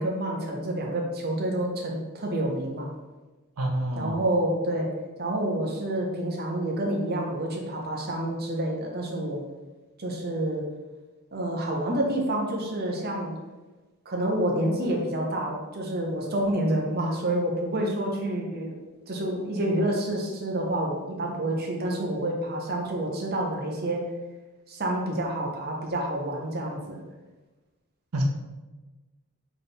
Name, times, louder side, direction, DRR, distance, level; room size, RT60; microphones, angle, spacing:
voice 1, 0.0-2.9 4.0-4.9 5.2-9.4 10.0-10.6 11.3-13.4 14.1-24.0 24.7-27.0, right 1 dB, 45° right, 0 dB, 0.7 m, -28 dB
voice 2, 3.6-4.2 28.1-28.2, right 1 dB, 85° right, 2 dB, 0.6 m, -28 dB
3.7 x 3.4 x 4.0 m, 1.2 s
head